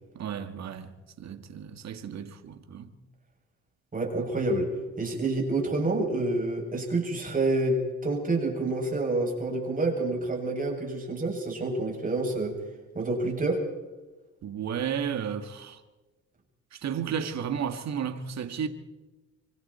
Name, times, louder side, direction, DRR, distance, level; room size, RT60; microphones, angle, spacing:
voice 1, 0.1-0.9 1.2-2.9 14.4-15.8 16.7-18.7, right 8 dB, 60° right, 2.1 m, -33 dB
voice 2, 3.9-4.7 5.0-12.6 12.9-13.6, right 2 dB, 25° right, 7.6 m, -28 dB
26.0 x 24.5 x 4.4 m
cardioid pair, 90°, 30 cm